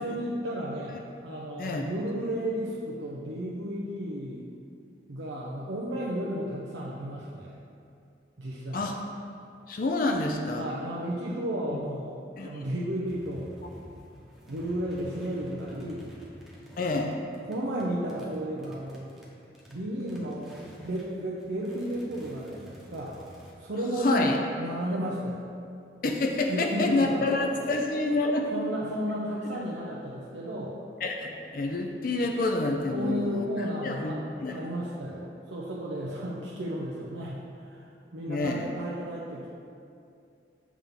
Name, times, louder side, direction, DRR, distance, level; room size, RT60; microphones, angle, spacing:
voice 1, 0.0-4.5 5.1-7.6 8.4-9.0 10.5-13.5 14.5-16.1 17.4-19.1 19.7-23.2 23.6-25.5 26.5-27.3 27.7-27.8 28.5-30.8 32.9-34.2 34.5-39.5, equal, 90° right, -6 dB, 0.7 m, -33 dB
voice 2, 9.7-10.6 12.4-12.6 16.8-17.1 24.0-24.4 26.0-28.5 31.0-33.5 33.8-34.1 34.4-34.6 38.3-38.7, left 2 dB, 50° left, 2 dB, 0.5 m, -27 dB
sound 1, 13.0-21.1 21.4-23.5, equal, ahead, 0.9 m, -50 dB
7.3 x 3.6 x 5.6 m, 2.5 s
head